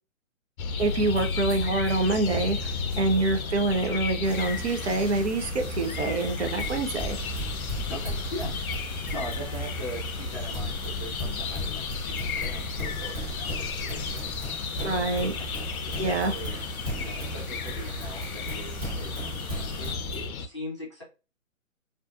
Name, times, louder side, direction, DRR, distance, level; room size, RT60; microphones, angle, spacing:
sound 1, 0.6-20.5, left 4 dB, 90° left, 0.5 m, -33 dB
sound 2, 0.8-20.3, equal, 25° right, 1.0 m, -39 dB
voice 1, 0.8-7.2 14.8-15.3 16.0-16.3, right 2 dB, 55° right, 6 dB, 0.5 m, -26 dB
sound 3, 4.2-19.9, left 1 dB, ahead, 1.1 m, -46 dB
voice 2, 7.9-8.5 9.1-14.3 14.8-16.6 17.0-19.4 19.8-21.0, equal, 20° left, -6 dB, 0.5 m, -41 dB
2.4 x 2.4 x 2.3 m, 0.31 s
hypercardioid pair, 160°, 41 cm